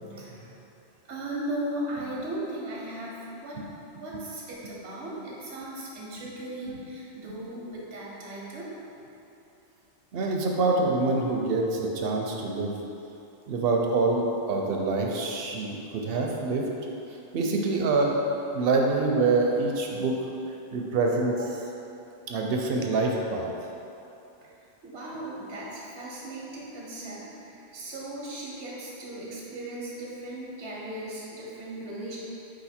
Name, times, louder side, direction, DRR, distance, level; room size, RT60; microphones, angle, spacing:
voice 1, 0.0-0.5 1.1-3.6 4.0-8.7 24.8-32.2, right 1 dB, 85° right, -5 dB, 1.0 m, -37 dB
voice 2, 10.1-12.7 13.5-16.7 17.3-18.2 18.5-20.1 20.7-21.3 22.3-23.4, right 3 dB, 65° right, 0 dB, 0.7 m, -25 dB
5.0 x 2.5 x 4.2 m, 2.9 s
omnidirectional pair, 1.1 m